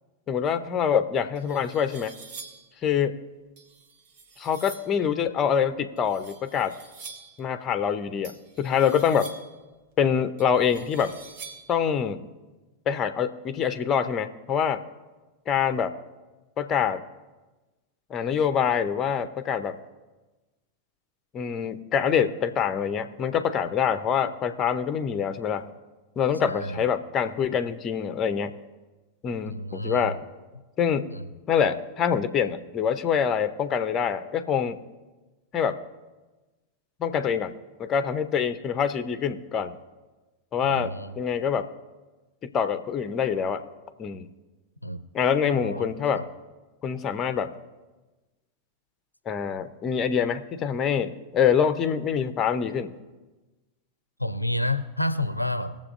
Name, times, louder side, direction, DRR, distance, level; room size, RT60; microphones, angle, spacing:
voice 1, 0.3-2.1 2.8-3.2 4.4-6.8 7.4-9.3 10.0-11.1 11.7-12.2 12.9-14.8 15.5-15.9 16.6-17.0 18.1-19.8 21.3-25.7 26.2-28.6 29.2-30.2 30.8-31.1 31.5-34.8 35.5-35.8 37.0-37.5 37.8-39.8 40.5-41.7 42.4-43.6 44.0-44.3 45.1-46.2 46.8-47.5 49.3-52.9, left 7 dB, 30° left, 11 dB, 0.7 m, -25 dB
sound 1, 0.8-0.9 1.3-2.7 3.6-5.0 6.0-7.4 8.2-9.6 10.4-11.8, right 5 dB, 45° right, 1.5 m, -46 dB
voice 2, 26.5-26.8 29.5-30.1 31.1-31.3 40.6-41.2 44.8-45.0 45.5-46.3 54.2-55.8, left 1 dB, 90° left, 11 dB, 0.6 m, -30 dB
20.5 x 7.2 x 2.6 m, 1.2 s
figure-of-eight pair, 90°, 0 cm